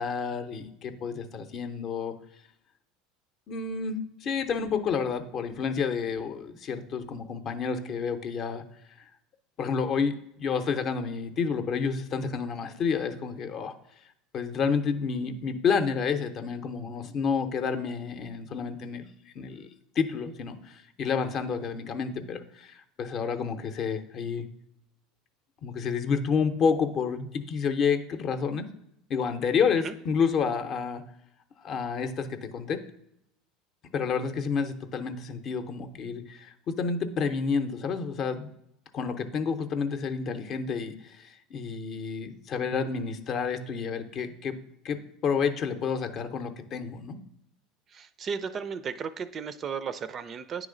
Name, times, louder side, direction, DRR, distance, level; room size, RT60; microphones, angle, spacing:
voice 1, 0.0-2.1 3.5-8.6 9.6-13.7 14.3-19.1 19.4-19.7 20.0-24.5 25.6-28.7 29.1-31.0 31.6-32.8 33.9-38.5 38.9-44.5 44.8-47.2, left 6 dB, 45° left, 8 dB, 0.6 m, -29 dB
voice 2, 47.9-50.7, right 6 dB, 35° right, 13 dB, 0.4 m, -35 dB
9.3 x 3.1 x 3.8 m, 0.78 s
supercardioid pair, 105°, 0 cm